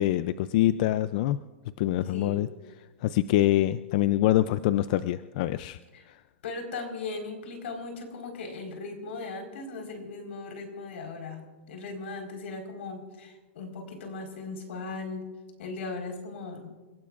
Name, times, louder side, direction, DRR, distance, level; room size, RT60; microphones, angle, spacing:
voice 1, 0.0-1.4 1.8-2.5 3.0-5.8 6.1-6.2, left 14 dB, 40° left, 14 dB, 0.4 m, -25 dB
voice 2, 2.1-2.5 5.9-6.0 6.4-15.3 15.6-16.7, left 3 dB, 70° left, 3 dB, 4.4 m, -38 dB
29.5 x 16.5 x 2.5 m, 1.2 s
supercardioid pair, 165°, 7 cm